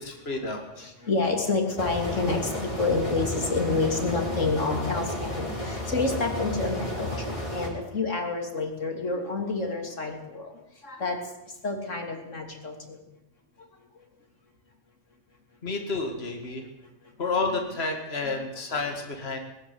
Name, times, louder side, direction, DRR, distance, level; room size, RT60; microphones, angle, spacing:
voice 1, 0.0-0.7 15.6-16.6 17.2-19.4, left 3 dB, 55° left, 3 dB, 2.5 m, -30 dB
voice 2, 0.8-10.6 10.8-11.2 11.6-13.0, left 3 dB, 90° left, 4 dB, 3.4 m, -29 dB
sound 1, 1.8-7.7, left 1 dB, 25° left, 5.1 m, -32 dB
20.0 x 13.0 x 9.9 m, 0.91 s
omnidirectional pair, 1.3 m